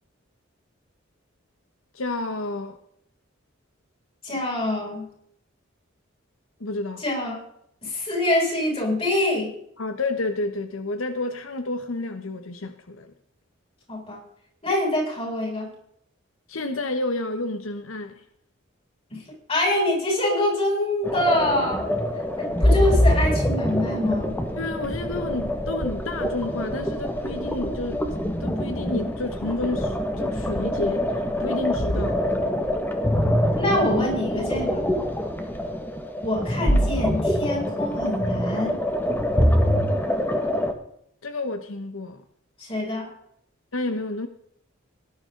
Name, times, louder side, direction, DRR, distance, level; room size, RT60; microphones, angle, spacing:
voice 1, 1.9-2.8 6.6-7.0 9.8-13.1 16.5-18.2 24.6-28.0 28.4-32.2 41.2-42.2 43.7-44.3, left 2 dB, 85° left, 1.1 m, -30 dB
voice 2, 4.2-5.1 7.0-7.4 7.8-9.5 13.9-14.2 14.6-15.7 19.1-19.2 19.5-21.9 22.4-24.3 33.6-34.9 36.2-38.8 42.6-43.1, left 1 dB, 30° left, 7.7 m, -25 dB
sound 1, 21.0-40.7, equal, 10° left, 1.7 m, -24 dB
18.0 x 12.0 x 3.9 m
head